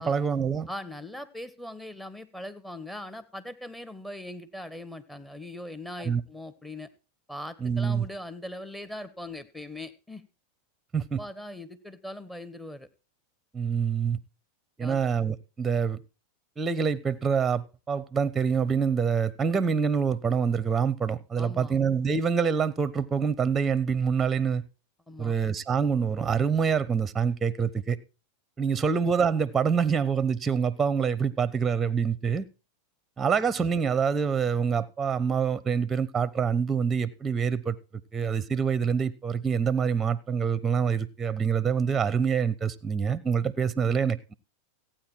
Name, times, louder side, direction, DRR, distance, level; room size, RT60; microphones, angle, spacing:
voice 1, 0.0-0.7 6.0-6.2 7.6-8.1 10.9-11.2 13.5-14.2 14.8-16.0 16.6-24.6 25.2-28.0 28.6-32.4 33.2-37.7 38.1-44.3, right 6 dB, 15° right, 0.7 m, -26 dB
voice 2, 0.7-6.9 7.3-10.2 11.2-12.9 14.8-15.1 21.4-21.8 25.1-25.3 28.8-28.9, left 1 dB, 5° left, 1.2 m, -40 dB
15.0 x 9.0 x 4.4 m
hypercardioid pair, 100°, 0 cm